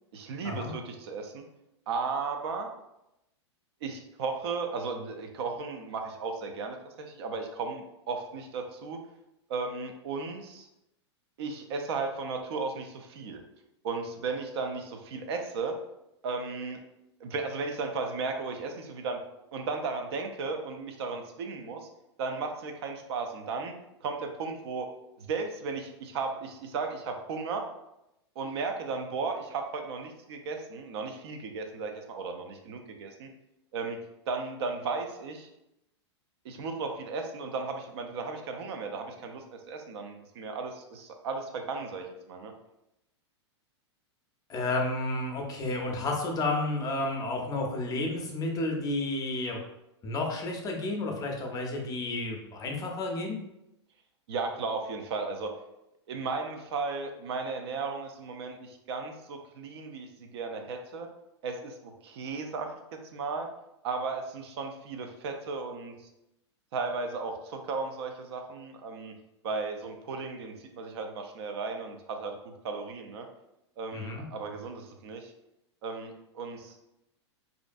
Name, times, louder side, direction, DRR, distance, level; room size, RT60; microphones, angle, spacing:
voice 1, 0.1-1.4 1.9-2.7 3.8-9.0 9.5-10.7 11.4-13.4 13.8-15.7 16.2-16.8 17.2-19.2 19.5-21.9 22.2-23.7 24.0-24.9 25.2-27.6 28.4-33.3 33.7-34.0 34.3-35.5 36.4-42.5 54.3-55.5 56.1-61.1 61.4-62.7 63.1-63.5 63.8-65.9 66.7-69.1 69.4-73.3 73.8-75.3 75.8-76.7, right 4 dB, 65° right, 4 dB, 0.4 m, -35 dB
voice 2, 44.5-49.6 50.0-53.4 73.9-74.3, left 2 dB, 25° left, 1 dB, 0.5 m, -31 dB
2.5 x 2.1 x 2.5 m, 0.87 s
hypercardioid pair, 110°, 15 cm